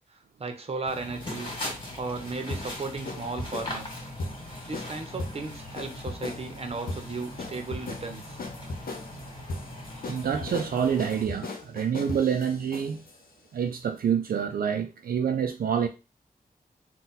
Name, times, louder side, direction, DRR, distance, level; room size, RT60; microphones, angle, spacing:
voice 1, 0.4-1.5 2.0-4.0 4.7-8.4, right 3 dB, 40° right, 0.9 m, -35 dB
sound 1, 0.9-11.3, left 1 dB, 30° left, 2.1 m, -40 dB
sound 2, 1.1-13.2, left 2 dB, 75° left, 0.9 m, -38 dB
voice 2, 10.1-13.0 13.5-15.9, right 8 dB, 75° right, 0.4 m, -27 dB
4.0 x 2.3 x 4.0 m
wide cardioid pair, 85°, 15 cm